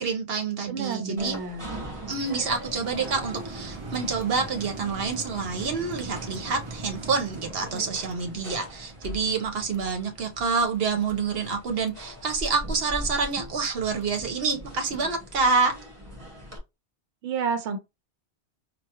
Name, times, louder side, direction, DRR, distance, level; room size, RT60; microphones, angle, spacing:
voice 1, 0.0-1.4 2.1-15.7, right 4 dB, 60° right, 1.1 m, -27 dB
voice 2, 0.7-1.7 17.2-17.8, right 5 dB, 85° right, 1.0 m, -29 dB
sound 1, 0.8-12.1 12.7-12.8, right 3 dB, 45° right, 0.4 m, -42 dB
sound 2, 1.2-16.6, equal, 30° right, 1.5 m, -42 dB
4.5 x 2.5 x 2.9 m
omnidirectional pair, 1.1 m